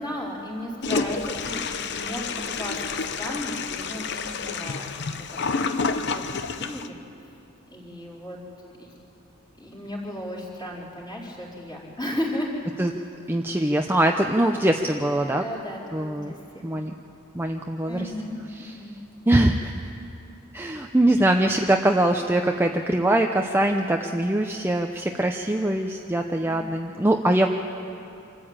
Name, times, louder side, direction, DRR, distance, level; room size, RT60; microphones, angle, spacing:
voice 1, 0.0-2.8 3.1-4.9 5.3-5.8 6.1-6.9 7.7-8.4 8.8-8.9 9.6-12.5 15.4-16.7 17.9-18.9, left 1 dB, 20° left, -4 dB, 4.3 m, -35 dB
Toilet flush, 0.8-6.9, left 4 dB, 55° left, 0.8 m, -29 dB
voice 2, 13.3-15.5 15.9-16.3 16.6-16.9 17.3-18.1 18.5-18.7 19.3-19.8 20.5-27.5, right 1 dB, 10° right, 3 dB, 0.6 m, -22 dB
26.0 x 13.5 x 8.8 m, 2.7 s
head